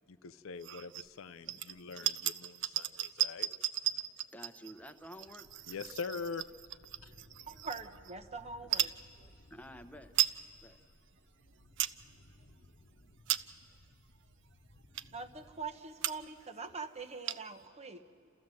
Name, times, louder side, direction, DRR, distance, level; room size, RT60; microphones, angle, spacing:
voice 1, 0.1-3.5 5.7-6.5 7.0-7.1, left 5 dB, 65° left, 13 dB, 0.5 m, -43 dB
sound 1, 0.6-1.1 1.5-8.1 8.6-9.0 9.6-9.7 9.9-10.4 10.8-10.9 11.4-12.0 12.5-12.7 13.1-13.7 14.3-14.4 14.9-15.3 15.7-15.8 16.0-16.4 16.7-16.8 17.0-17.6, right 12 dB, 60° right, 0.5 m, -36 dB
voice 2, 1.5-2.0 2.7-2.8 4.3-5.5 9.3-10.1 10.6-10.8, equal, 5° left, 8 dB, 0.9 m, -51 dB
sound 2, 5.4-15.8, left 1 dB, 45° left, 1.1 m, -61 dB
voice 3, 7.5-9.3 15.1-18.3, right 4 dB, 30° right, 7 dB, 0.9 m, -44 dB
29.5 x 14.5 x 7.7 m, 2.9 s
head